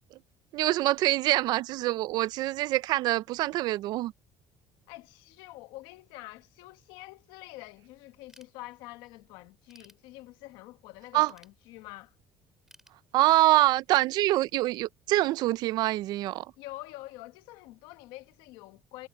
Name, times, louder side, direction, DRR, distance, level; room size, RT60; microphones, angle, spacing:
voice 1, 0.5-4.1 11.1-11.3 13.1-16.5, right 16 dB, 70° right, 0.5 m, -25 dB
voice 2, 4.9-12.1 16.6-19.1, left 18 dB, 90° left, 1.2 m, -46 dB
Ratchet pawl / Tools, 8.3-9.1 9.5-10.6 11.2-12.1 12.7-13.7, right 1 dB, 5° right, 3.7 m, -60 dB
cardioid pair, 120°, 7 cm